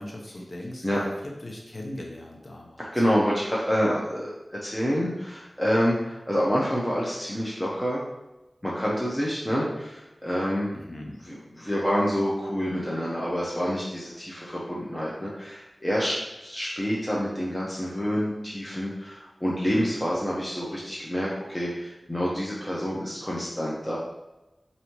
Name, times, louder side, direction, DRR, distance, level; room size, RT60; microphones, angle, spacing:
voice 1, 0.0-3.1 10.7-11.2, left 1 dB, 60° left, 0 dB, 0.9 m, -39 dB
voice 2, 2.8-4.3 4.6-8.1 8.6-10.7 11.3-24.0, equal, 10° left, -6 dB, 0.9 m, -27 dB
4.9 x 2.8 x 3.0 m, 0.99 s
cardioid pair, 40°, 0 cm